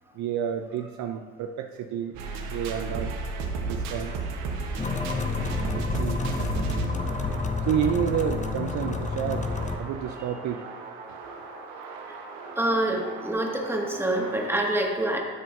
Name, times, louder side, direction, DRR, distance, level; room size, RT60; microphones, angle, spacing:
voice 1, 0.1-2.2 2.5-3.1 3.7-4.1 5.7-6.2 7.7-9.5 9.8-10.6, right 9 dB, 60° right, 5 dB, 0.6 m, -29 dB
sound 1, 2.1-14.5, right 3 dB, 75° right, 1.1 m, -35 dB
sound 2, 4.8-9.8, left 4 dB, 20° left, 0.8 m, -29 dB
voice 2, 12.6-15.2, right 1 dB, 5° right, -1 dB, 1.7 m, -26 dB
12.0 x 6.5 x 2.6 m, 1.5 s
hypercardioid pair, 60°, 33 cm